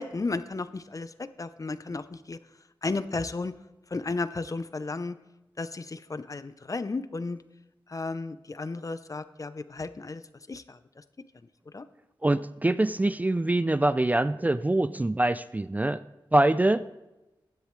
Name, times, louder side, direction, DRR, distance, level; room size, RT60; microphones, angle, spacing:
voice 1, 0.0-2.4 2.8-3.5 3.9-5.2 5.6-7.4 7.9-10.2 10.5-11.0 11.7-11.9, left 3 dB, 40° left, 13 dB, 0.6 m, -34 dB
voice 2, 12.2-16.0 16.3-16.9, right 1 dB, 20° right, 14 dB, 0.3 m, -24 dB
15.5 x 10.5 x 3.2 m, 1.0 s
wide cardioid pair, 75°, 9 cm